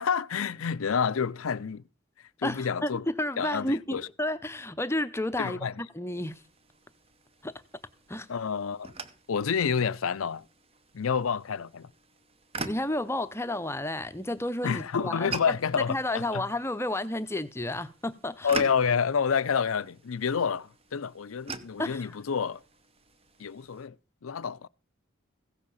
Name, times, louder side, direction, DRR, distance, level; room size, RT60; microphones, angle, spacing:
voice 1, 0.0-1.8 2.4-3.1 3.4-4.1 5.4-5.7 8.3-8.9 9.3-10.4 10.9-11.9 14.6-16.4 18.4-22.6 23.4-24.0 24.2-24.7, left 6 dB, 80° left, 0.5 m, -28 dB
voice 2, 2.4-6.4 7.4-7.5 8.1-8.3 12.6-18.5 21.8-22.1, left 1 dB, 10° left, 0.7 m, -32 dB
sound 1, 6.1-23.9, right 4 dB, 30° right, 0.8 m, -45 dB
15.5 x 7.8 x 5.6 m
head